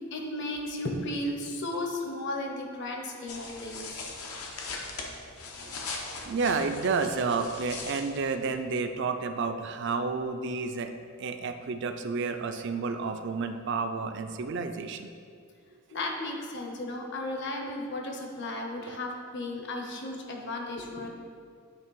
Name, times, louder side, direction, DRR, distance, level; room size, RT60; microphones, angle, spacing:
voice 1, 0.1-4.0 15.9-21.1, left 1 dB, 50° left, 2 dB, 0.8 m, -34 dB
sound 1, 3.3-8.6, left 3 dB, 80° left, 0.8 m, -40 dB
voice 2, 6.2-10.9 11.2-15.1 18.9-19.0, right 4 dB, 50° right, 8 dB, 0.4 m, -30 dB
8.6 x 3.3 x 4.6 m, 2.2 s
head